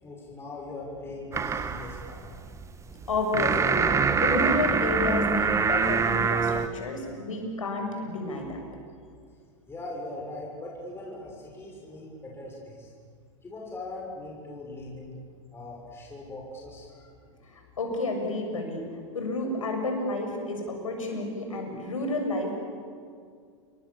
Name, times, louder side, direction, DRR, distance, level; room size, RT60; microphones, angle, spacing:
voice 1, 0.0-2.4 2.8-3.1 9.7-12.9 13.4-15.2 15.5-17.4, left 2 dB, 15° left, -3 dB, 6.6 m, -40 dB
sound 1, 1.3-6.7, right 5 dB, 15° right, 1.4 m, -25 dB
voice 2, 3.1-8.6 17.5-18.9 19.1-22.5, left 2 dB, 85° left, 3 dB, 7.3 m, -30 dB
29.5 x 24.0 x 7.4 m, 2.2 s
hypercardioid pair, 105°, 17 cm